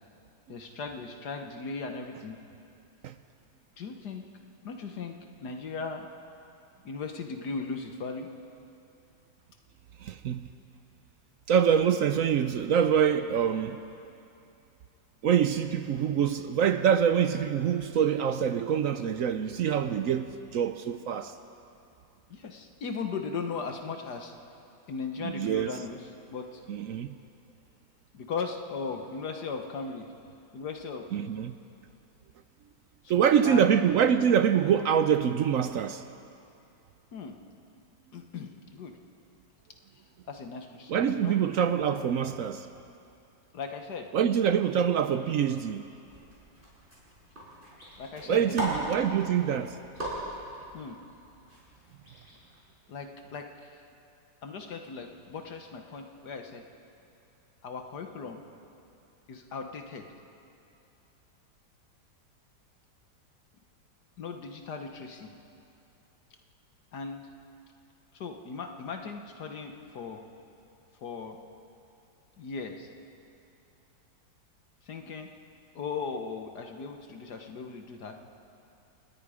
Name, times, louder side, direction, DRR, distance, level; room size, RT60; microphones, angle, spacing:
voice 1, 0.5-2.4 3.8-4.3 4.6-6.1 6.8-8.3 22.3-24.3 24.9-26.6 28.1-30.0 30.5-31.1 33.0-33.8 37.1-37.4 38.1-39.0 40.3-41.4 43.5-44.1 48.0-48.7 50.7-51.0 52.9-53.8 54.4-56.6 57.6-58.4 59.3-60.1 64.2-65.3 66.9-67.2 68.1-70.2 71.0-71.4 72.4-72.9 74.8-75.3 75.8-78.2, left 4 dB, 65° left, 1.6 m, -38 dB
voice 2, 10.0-10.5 11.5-13.8 15.2-21.4 25.2-25.7 26.7-27.1 31.1-31.6 33.1-36.0 40.9-42.7 44.1-45.9 48.3-49.8, right 8 dB, 70° right, 0.8 m, -25 dB
sound 1, 46.1-52.6, right 1 dB, 25° right, 5.5 m, -39 dB
28.5 x 19.0 x 4.9 m
omnidirectional pair, 2.0 m